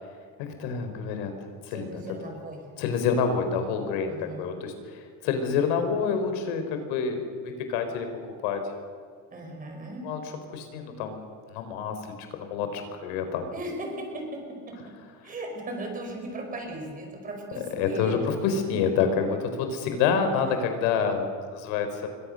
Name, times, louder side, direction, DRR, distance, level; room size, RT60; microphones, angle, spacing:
voice 1, 0.4-1.3 1.7-2.0 2.8-8.1 8.4-8.6 10.0-10.2 10.5-13.5 17.8-22.1, left 6 dB, 80° left, 7 dB, 4.6 m, -28 dB
voice 2, 1.7-2.6 4.1-4.5 9.3-10.1 13.5-15.0 15.2-18.3 20.4-20.5, right 1 dB, 20° right, 2 dB, 5.0 m, -37 dB
27.5 x 23.0 x 6.6 m, 2.1 s
cardioid pair, 180°, 40 cm